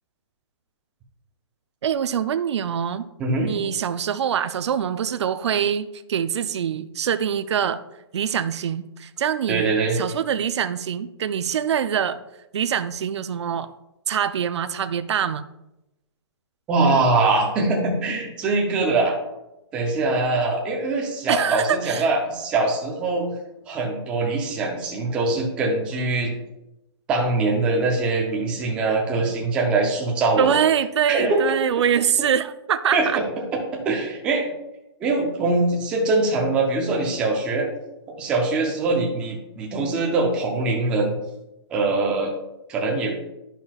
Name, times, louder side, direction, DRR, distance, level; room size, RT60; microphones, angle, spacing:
voice 1, 1.8-3.0 3.5-7.8 8.1-12.2 12.5-13.7 14.1-15.5 21.3-22.1 30.4-33.2, right 8 dB, 70° right, 12 dB, 0.4 m, -24 dB
voice 2, 3.2-3.5 9.5-10.0 16.7-19.1 19.7-23.3 23.7-26.3 27.1-30.6 31.1-31.4 32.9-33.2 33.5-34.5 35.0-37.7 38.2-41.2 41.7-42.3 42.7-43.2, right 3 dB, 5° right, 0 dB, 0.5 m, -22 dB
10.5 x 5.7 x 2.3 m, 0.93 s
hypercardioid pair, 180°, 15 cm